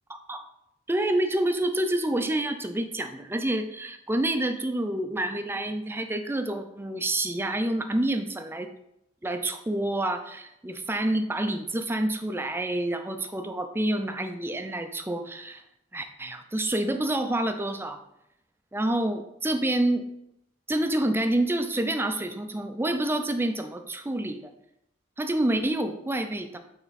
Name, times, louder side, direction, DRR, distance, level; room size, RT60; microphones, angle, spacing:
voice 1, 0.1-0.5 0.9-8.7 9.2-15.6 15.9-18.0 18.7-20.0 20.7-24.5 25.2-26.6, right 1 dB, 10° right, 7 dB, 0.5 m, -28 dB
8.9 x 3.6 x 4.1 m, 0.80 s
head